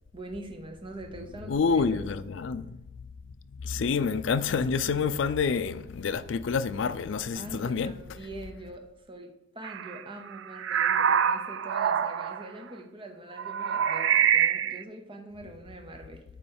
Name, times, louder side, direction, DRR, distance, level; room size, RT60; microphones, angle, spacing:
voice 1, 0.1-2.1 7.3-16.2, right 1 dB, 25° right, 0.8 m, -43 dB
voice 2, 1.5-2.8 3.6-7.9, left 5 dB, 70° left, 0.4 m, -28 dB
sound 1, 9.6-10.0 10.3-12.5 13.4-14.8, right 8 dB, 65° right, 0.3 m, -25 dB
8.6 x 3.1 x 6.5 m
head